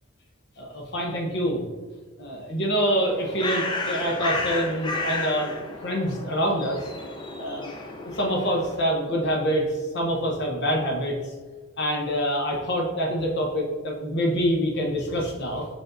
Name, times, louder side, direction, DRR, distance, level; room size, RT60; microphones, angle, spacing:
voice 1, 0.6-1.6 2.2-5.5 5.8-6.8 7.4-7.7 8.0-9.7 9.9-11.2 11.8-15.7, equal, 55° left, 0 dB, 0.8 m, -26 dB
Bird, 2.9-8.9, left 2 dB, 20° left, 0.4 m, -32 dB
4.7 x 4.5 x 2.5 m, 1.4 s
head